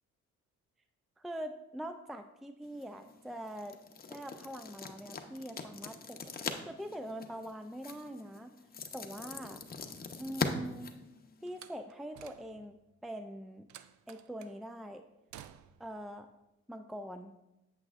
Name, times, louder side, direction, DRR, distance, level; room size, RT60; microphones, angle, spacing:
voice 1, 1.2-3.8 4.1-8.5 8.9-9.6 10.2-10.9 11.4-13.7 14.1-15.0 15.8-16.3 16.7-17.3, equal, ahead, 8 dB, 0.3 m, -43 dB
sound 1, 2.6-11.7, left 4 dB, 30° left, 0.7 m, -42 dB
Slam, 11.5-12.8 13.7-14.6 15.3-15.9, right 11 dB, 75° right, 0.5 m, -53 dB
8.3 x 7.6 x 2.5 m, 0.93 s
cardioid pair, 90°, 30 cm